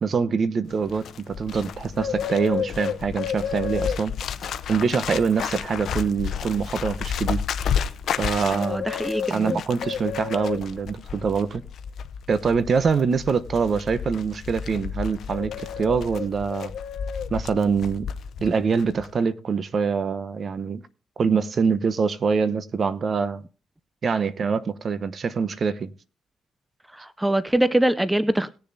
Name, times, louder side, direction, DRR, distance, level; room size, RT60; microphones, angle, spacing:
voice 1, 0.0-4.1 4.7-7.4 8.2-8.8 9.3-11.6 12.3-16.7 17.3-18.1 18.4-20.8 21.2-23.4 24.0-25.9, right 5 dB, 45° right, 0.9 m, -24 dB
Bird, 0.7-18.5 18.8-19.1, left 7 dB, 65° left, 0.7 m, -31 dB
voice 2, 8.5-9.6 27.0-28.5, right 1 dB, 10° right, 0.5 m, -23 dB
19.5 x 6.9 x 2.7 m
cardioid pair, 90°, 0 cm